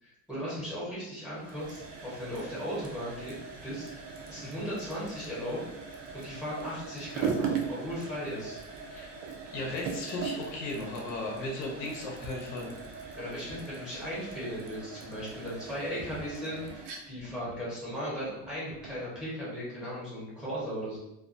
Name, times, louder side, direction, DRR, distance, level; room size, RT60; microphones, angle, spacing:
voice 1, 0.0-3.3 3.6-3.9 4.3-5.6 6.1-8.6 13.1-21.0, equal, ahead, -9 dB, 0.8 m, -37 dB
sound 1, 1.3-19.0, right 6 dB, 50° right, 0.4 m, -40 dB
voice 2, 9.5-12.7, left 2 dB, 55° left, -2 dB, 0.7 m, -36 dB
2.3 x 2.2 x 2.5 m, 0.88 s
cardioid pair, 170°, 35 cm